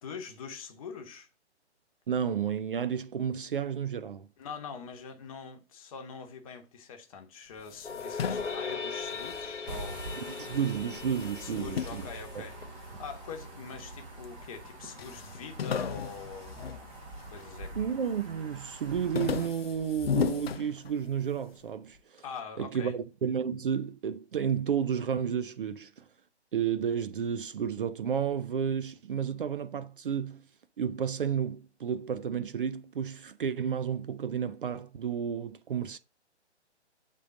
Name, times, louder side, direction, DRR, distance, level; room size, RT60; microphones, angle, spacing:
voice 1, 0.0-1.3 4.4-10.1 11.4-16.6 17.3-17.8 22.2-23.0, left 6 dB, 30° left, 1.1 m, -44 dB
voice 2, 2.1-4.3 10.2-12.0 12.4-12.5 17.8-22.2 22.6-26.0 26.5-30.4 30.8-36.0, right 7 dB, 50° right, 0.5 m, -32 dB
sound 1, 7.6-10.2 10.6-13.1 13.7-14.4 14.6-14.7 15.0-17.6 18.0-18.4 18.7-21.3, left 7 dB, 60° left, 0.5 m, -36 dB
sound 2, 7.8-13.1, left 5 dB, 90° left, 0.9 m, -39 dB
sound 3, 9.7-19.4, right 2 dB, 15° right, 1.0 m, -45 dB
8.2 x 3.7 x 3.7 m
figure-of-eight pair, 140°, 35 cm